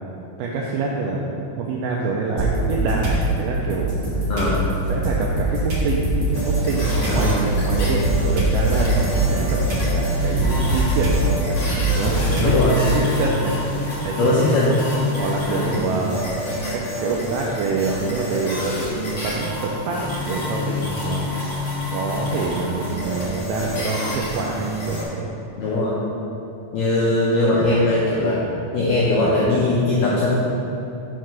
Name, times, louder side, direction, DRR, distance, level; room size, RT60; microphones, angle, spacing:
voice 1, 0.4-4.0 4.9-9.6 9.9-11.6 11.9-12.5 12.9-13.6 14.0-14.6 15.2-16.3 16.7-18.8 19.2-21.3 21.9-25.3, right 3 dB, 80° right, -2 dB, 2.3 m, -26 dB
sound 1, 2.4-3.2 3.7-12.9, right 1 dB, 65° right, 1.4 m, -22 dB
voice 2, 4.3-4.7 7.1-7.3 12.4-12.7 14.2-14.7 15.5-15.8 25.6-26.0 26.7-28.4 28.7-30.4, left 2 dB, 80° left, -7 dB, 1.9 m, -20 dB
sound 2, 6.3-25.0, left 1 dB, 45° left, 1.4 m, -28 dB
6.4 x 4.7 x 6.1 m, 2.8 s
omnidirectional pair, 5.0 m